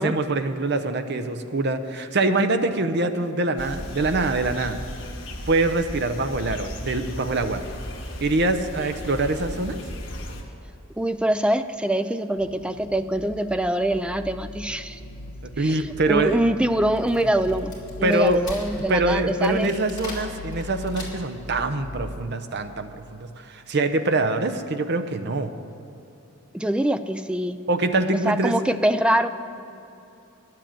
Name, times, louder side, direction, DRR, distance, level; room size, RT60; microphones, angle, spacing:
voice 1, 0.0-4.8 5.5-7.6 8.2-9.8 15.6-16.4 18.0-18.4 18.9-25.5 27.7-28.6, right 2 dB, 50° right, 9 dB, 0.7 m, -24 dB
sound 1, 3.6-10.4, left 1 dB, 60° left, 1.6 m, -35 dB
voice 2, 11.0-15.0 15.6-17.7 18.0-19.7 26.5-27.6 28.3-29.3, right 1 dB, 5° right, 10 dB, 0.3 m, -24 dB
sound 2, 12.4-22.0, left 2 dB, 80° left, 1.0 m, -40 dB
Wood, 16.7-21.5, left 2 dB, 20° left, 3.0 m, -41 dB
11.0 x 7.7 x 8.9 m, 2.9 s
head